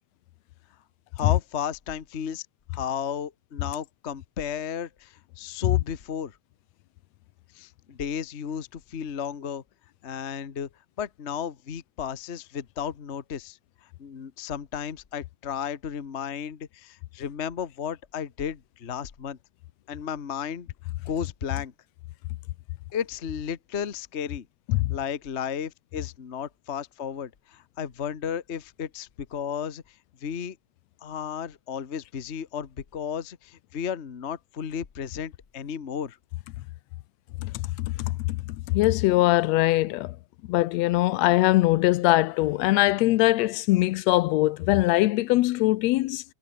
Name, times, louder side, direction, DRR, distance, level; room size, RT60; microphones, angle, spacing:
voice 1, 1.1-2.5 2.7-6.4 7.5-9.6 10.0-10.7 11.0-13.6 14.0-19.4 19.9-20.7 21.0-21.7 22.9-24.5 24.9-29.8 30.2-30.6 31.0-36.2, left 7 dB, 45° left, 0.8 m, -33 dB
voice 2, 37.4-37.9 38.3-38.4 38.7-40.2 40.5-46.2, left 18 dB, 75° left, 1.7 m, -22 dB
omnidirectional pair, 3.3 m